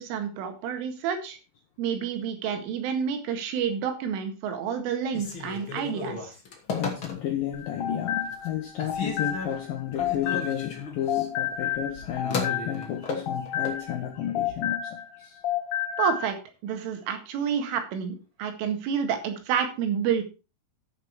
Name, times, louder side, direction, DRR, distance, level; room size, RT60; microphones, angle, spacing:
voice 1, 0.0-1.4 1.8-6.3 16.0-16.4 16.6-20.2, right 7 dB, 80° right, 4.4 m, -29 dB
Telephone, 5.1-7.5 8.0-8.5 8.8-13.8, left 4 dB, 40° left, 2.0 m, -35 dB
voice 2, 6.7-15.4 16.7-16.8, left 10 dB, 85° left, 1.9 m, -32 dB
sound 1, 7.5-10.8 11.1-15.2 15.4-16.3, left 10 dB, 65° left, 1.7 m, -31 dB
12.5 x 6.8 x 4.6 m
omnidirectional pair, 5.6 m